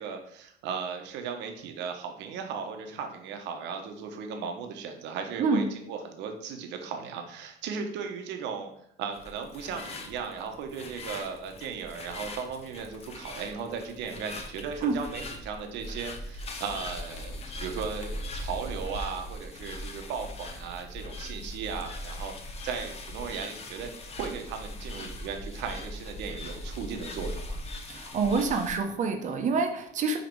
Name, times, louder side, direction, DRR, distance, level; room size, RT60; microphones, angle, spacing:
voice 1, 0.0-8.7 9.0-22.3 22.6-27.6, right 6 dB, 70° right, 5 dB, 1.1 m, -36 dB
sound 1, 9.1-28.8, left 1 dB, 35° left, 0.9 m, -40 dB
voice 2, 27.9-30.2, right 4 dB, 40° right, 5 dB, 1.0 m, -27 dB
5.2 x 5.0 x 4.6 m, 0.73 s
cardioid pair, 145°, 19 cm